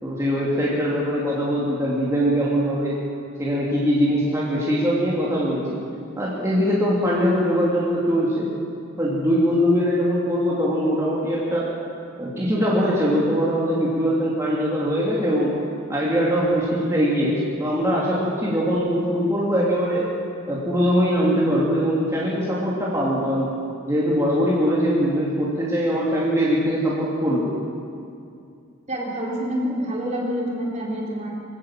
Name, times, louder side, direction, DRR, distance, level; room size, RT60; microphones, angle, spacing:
voice 1, 0.0-3.0 3.4-5.7 6.2-8.5 9.0-11.7 12.2-15.6 15.9-20.1 20.5-23.5 23.9-27.5, equal, 15° right, -6 dB, 3.0 m, -22 dB
voice 2, 28.9-31.3, equal, 35° right, -3 dB, 3.9 m, -27 dB
24.0 x 16.0 x 7.6 m, 2.4 s
head